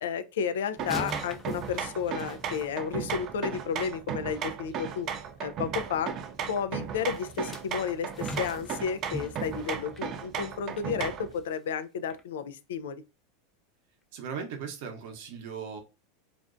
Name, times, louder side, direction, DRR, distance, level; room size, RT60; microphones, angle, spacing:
voice 1, 0.0-5.1 5.4-6.1 6.5-13.0, left 7 dB, 80° left, 0.3 m, -32 dB
sound 1, 0.8-3.3 7.1-10.9 11.3-11.5 12.1-12.2, equal, 10° left, 0.5 m, -42 dB
sound 2, 0.8-11.3, right 7 dB, 45° right, 0.4 m, -36 dB
voice 2, 14.1-15.8, right 6 dB, 65° right, 0.8 m, -38 dB
2.5 x 2.1 x 2.4 m
hypercardioid pair, 110°, 0 cm